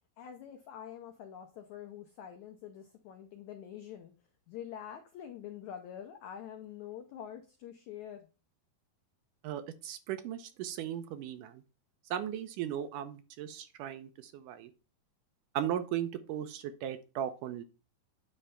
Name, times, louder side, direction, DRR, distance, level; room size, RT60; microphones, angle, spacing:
voice 1, 0.2-4.1 4.5-8.3, left 9 dB, 85° left, 5 dB, 1.7 m, -46 dB
voice 2, 9.4-11.6 12.1-14.7 15.5-17.6, right 10 dB, 80° right, 9 dB, 1.9 m, -37 dB
9.7 x 3.3 x 5.6 m, 0.33 s
omnidirectional pair, 4.5 m